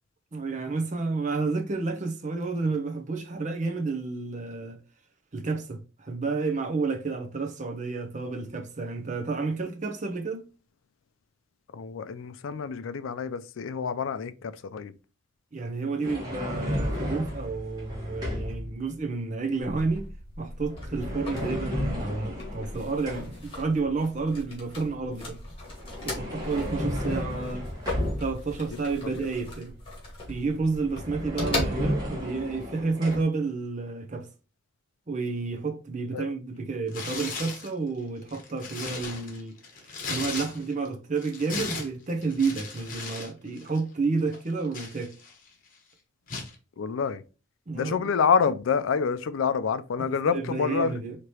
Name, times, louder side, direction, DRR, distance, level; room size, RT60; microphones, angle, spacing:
voice 1, 0.3-4.8 5.3-10.4 15.5-20.1 20.4-25.4 26.0-27.7 28.2-29.7 30.3-34.3 35.1-39.6 40.1-45.1 47.7-48.0 50.0-51.2, right 4 dB, 40° right, 0.6 m, -30 dB
voice 2, 11.7-14.9 29.1-29.3 36.1-36.3 46.8-47.2 47.7-51.0, left 6 dB, 80° left, 0.4 m, -27 dB
sound 1, 16.0-18.7 20.7-23.5 25.7-28.6 30.5-30.6 30.8-33.2, left 1 dB, 20° right, 1.6 m, -33 dB
sound 2, 19.6-32.2, left 1 dB, 25° left, 1.9 m, -38 dB
Tearing, 36.9-37.7 38.2-40.9 41.2-43.3 43.6-43.8 44.3-45.5 46.3-46.5, left 4 dB, 45° left, 1.1 m, -37 dB
4.7 x 2.9 x 2.9 m
head